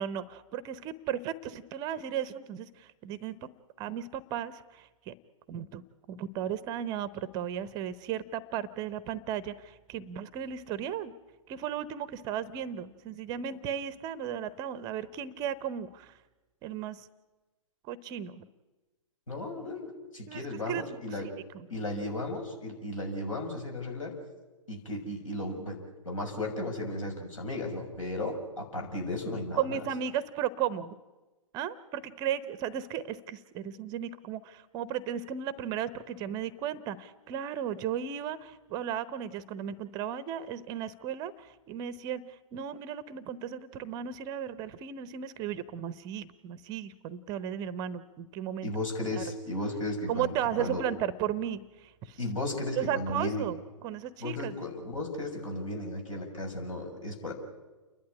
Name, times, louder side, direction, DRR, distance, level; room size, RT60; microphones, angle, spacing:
voice 1, 0.0-3.5 3.8-5.1 5.5-5.8 6.1-11.1 11.5-16.1 16.6-17.1 17.9-18.5 20.3-20.8 21.2-21.7 29.6-30.9 31.5-42.2 42.5-48.7 49.2-49.3 50.1-52.2 52.8-53.6 53.8-54.6, right 9 dB, 20° right, 16 dB, 0.7 m, -35 dB
voice 2, 19.3-21.3 21.7-24.2 24.7-29.9 48.6-50.9 52.2-53.6 54.2-57.3, left 1 dB, 70° left, 3 dB, 6.5 m, -35 dB
29.0 x 11.5 x 9.8 m, 1.2 s
figure-of-eight pair, 120°, 18 cm